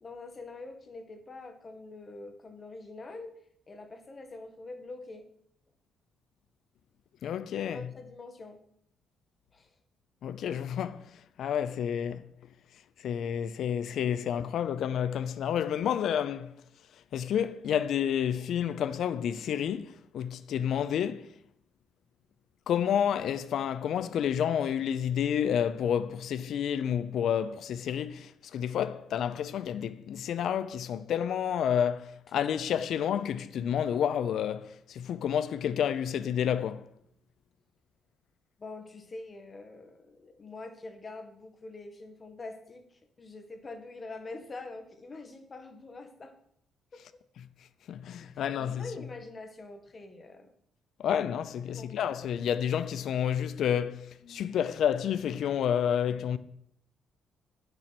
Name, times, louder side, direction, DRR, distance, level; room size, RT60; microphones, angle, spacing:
voice 1, 0.0-3.3 3.7-5.3 7.6-8.6 9.5-9.7 38.6-46.3 46.9-47.0 48.3-50.5 51.7-52.0, left 3 dB, 35° left, 1.8 m, -45 dB
voice 2, 7.2-7.9 10.2-11.1 11.4-12.2 13.0-16.5 17.1-21.4 22.7-36.9 47.9-48.9 51.0-56.4, left 9 dB, 70° left, 0.5 m, -30 dB
9.9 x 6.8 x 6.0 m
cardioid pair, 90°, 0 cm